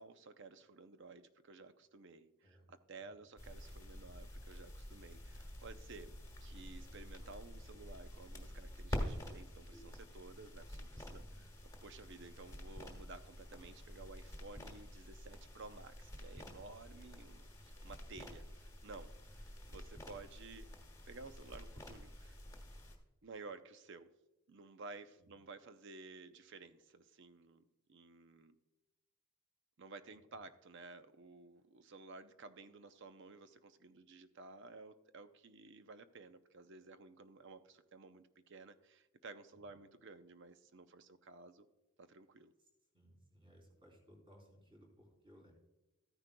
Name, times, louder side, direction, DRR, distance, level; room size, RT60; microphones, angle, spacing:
voice 1, 0.0-6.1 6.4-11.5 11.8-20.7 21.1-22.4 23.2-24.1 24.5-27.6 27.9-28.6 29.8-41.7 42.0-42.5, right 3 dB, 55° right, 10 dB, 0.6 m, -54 dB
sound 1, 3.4-23.0, equal, 15° left, 1.5 m, -48 dB
voice 2, 11.1-11.5 25.1-25.3 39.5-39.7 42.6-42.7 42.9-45.5, equal, 25° right, 0 dB, 3.3 m, -63 dB
14.0 x 9.9 x 2.2 m, 0.98 s
head